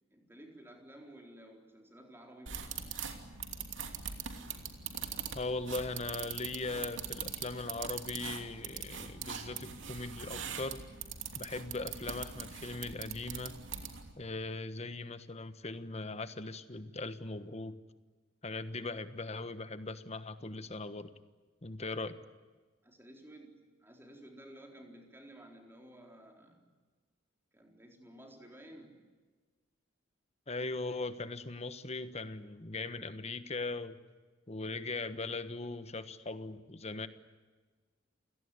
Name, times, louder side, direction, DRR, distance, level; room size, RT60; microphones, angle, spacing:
voice 1, 0.1-2.8 18.8-19.0 22.8-26.7 27.5-29.1, right 1 dB, 10° right, 2 dB, 4.1 m, -54 dB
sound 1, 2.5-14.1, right 7 dB, 70° right, 2.9 m, -42 dB
voice 2, 5.3-10.8 11.3-13.6 14.2-17.8 18.4-21.1 21.6-22.2 30.5-34.0 34.5-37.1, left 3 dB, 35° left, 12 dB, 1.3 m, -39 dB
29.0 x 18.0 x 9.8 m, 1.3 s
head